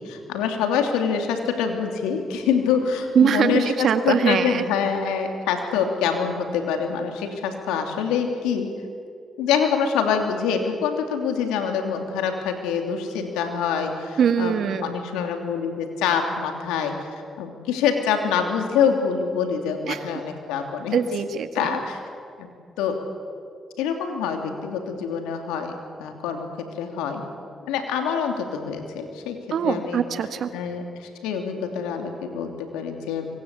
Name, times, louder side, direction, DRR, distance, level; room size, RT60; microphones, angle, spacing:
voice 1, 0.0-8.7 9.4-16.9 17.4-21.0 21.5-22.0 22.4-22.5 22.8-23.0 23.8-25.7 26.0-26.5 26.8-27.2 27.7-29.4 29.6-30.0 30.5-33.3, left 7 dB, 90° left, 4 dB, 3.1 m, -25 dB
voice 2, 3.2-4.6 14.2-14.9 19.9-20.0 20.9-21.8 29.5-30.5, right 7 dB, 70° right, 9 dB, 1.9 m, -22 dB
24.5 x 24.5 x 8.5 m, 2.4 s
supercardioid pair, 45°, 0 cm